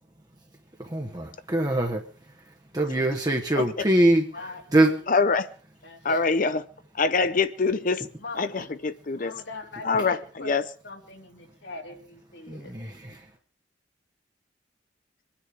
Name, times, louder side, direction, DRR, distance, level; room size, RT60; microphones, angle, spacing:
voice 1, 0.8-2.0 2.7-4.2 4.7-4.9 12.5-13.1, right 1 dB, 20° right, 1.2 m, -23 dB
voice 2, 3.6-3.9 5.1-5.5 6.0-6.7 7.0-9.3 9.8-10.7, left 4 dB, 45° left, 0.6 m, -25 dB
voice 3, 4.1-5.4 5.8-6.1 8.2-8.5 9.1-10.5 10.8-12.7, left 3 dB, 70° left, 2.9 m, -42 dB
23.5 x 9.9 x 5.1 m
head